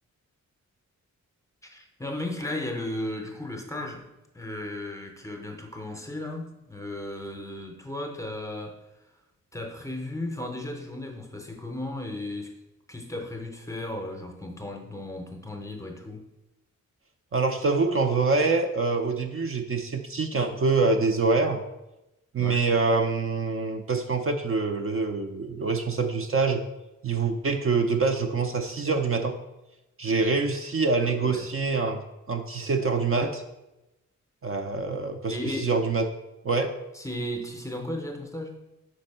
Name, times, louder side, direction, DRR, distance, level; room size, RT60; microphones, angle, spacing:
voice 1, 1.6-4.1 4.3-8.8 9.5-12.6 12.9-16.3 22.4-22.6 31.2-31.5 34.7-34.9 35.3-35.7 36.9-38.6, left 1 dB, 10° left, 3 dB, 0.6 m, -35 dB
voice 2, 17.3-21.6 22.3-26.6 27.0-29.3 30.0-32.0 32.3-33.4 34.4-36.1 36.4-36.7, right 4 dB, 45° right, 5 dB, 0.5 m, -25 dB
5.2 x 4.1 x 5.4 m, 0.97 s
wide cardioid pair, 170°, 31 cm